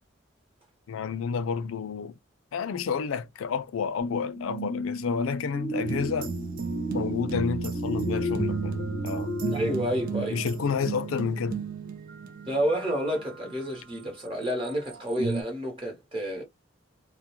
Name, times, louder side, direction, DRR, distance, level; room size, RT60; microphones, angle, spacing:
voice 1, 0.9-2.2 2.5-6.3 6.9-9.3 10.3-11.6, left 6 dB, 90° left, 0.4 m, -30 dB
sound 1, 4.0-11.4 11.9-12.0, left 1 dB, 15° left, 0.5 m, -35 dB
sound 2, 5.8-13.6 14.3-15.4, right 5 dB, 45° right, 0.3 m, -33 dB
voice 2, 9.5-10.4 12.5-16.4, equal, 25° right, 0.8 m, -30 dB
2.3 x 2.1 x 2.9 m
head